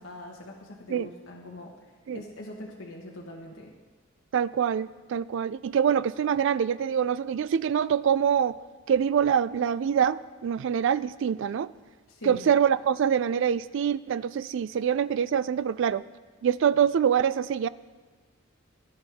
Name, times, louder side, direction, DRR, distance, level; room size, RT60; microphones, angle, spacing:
voice 1, 0.0-1.8 2.1-3.8 12.1-12.5, left 1 dB, 75° left, -2 dB, 1.2 m, -42 dB
voice 2, 4.3-8.6 8.9-11.7 12.2-16.0 16.4-17.7, right 8 dB, 65° right, 17 dB, 0.3 m, -25 dB
17.0 x 11.0 x 3.5 m, 1.4 s
head